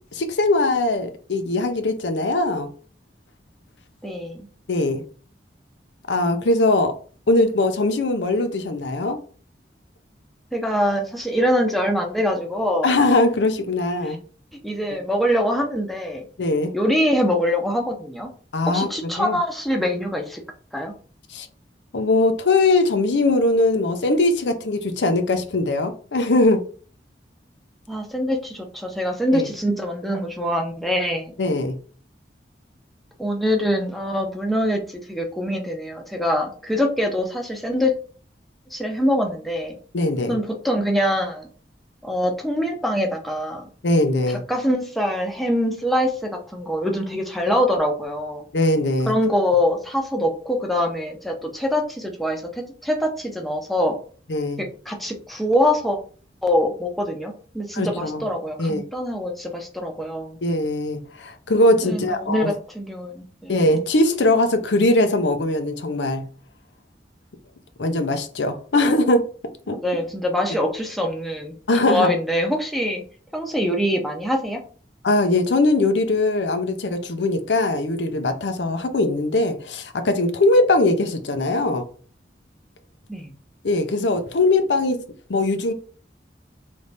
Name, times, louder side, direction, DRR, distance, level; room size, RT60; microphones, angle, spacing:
voice 1, 0.1-2.7 4.7-5.0 6.1-6.9 7.3-9.2 12.8-14.2 14.9-15.0 16.4-16.7 18.5-18.9 19.2-19.4 21.3-21.5 21.9-26.6 29.3-29.5 31.4-31.8 39.9-40.4 43.8-44.4 48.5-49.1 54.3-54.6 57.7-58.2 58.6-58.8 60.4-62.5 63.5-66.3 67.8-69.2 69.7-69.8 71.7-72.1 75.0-81.8 83.6-85.0 85.3-85.7, left 2 dB, 90° left, 0.6 m, -20 dB
voice 2, 4.0-4.5 10.5-12.9 14.0-14.2 14.6-16.3 16.7-18.3 18.7-20.4 20.7-20.9 27.9-31.3 33.2-37.9 38.7-39.8 40.3-41.5 42.0-43.7 44.3-48.4 49.0-54.0 54.9-56.0 56.4-60.4 61.8-63.6 69.7-73.0 73.3-74.6 83.1-83.3, equal, ahead, 0.6 m, -24 dB
3.4 x 3.2 x 4.0 m
head